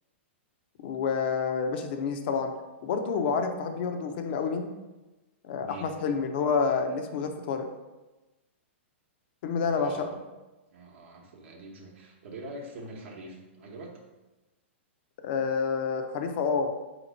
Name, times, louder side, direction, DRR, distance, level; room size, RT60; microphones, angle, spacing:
voice 1, 0.8-2.5 2.8-4.7 5.4-7.7 9.4-10.1 15.2-16.7, left 5 dB, 50° left, 6 dB, 0.5 m, -28 dB
voice 2, 5.6-5.9 9.6-10.2 10.7-14.0, right 2 dB, 65° right, -1 dB, 0.8 m, -44 dB
4.1 x 2.9 x 4.0 m, 1.1 s
hypercardioid pair, 140°, 7 cm